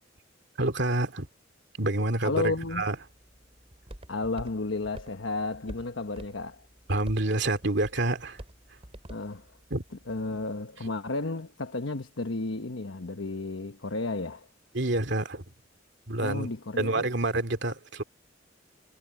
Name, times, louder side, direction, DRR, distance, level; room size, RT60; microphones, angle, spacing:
voice 1, 0.6-1.3 1.8-3.0 6.9-8.4 9.7-9.8 14.7-15.4 16.1-16.5 16.8-18.0, right 2 dB, 65° right, 2.6 m, -27 dB
voice 2, 2.2-2.8 4.1-6.6 9.1-9.5 10.1-14.5 16.2-17.1, left 2 dB, 90° left, 1.2 m, -32 dB
Walk footsteps, 2.6-10.5, right 1 dB, 30° right, 3.1 m, -48 dB
head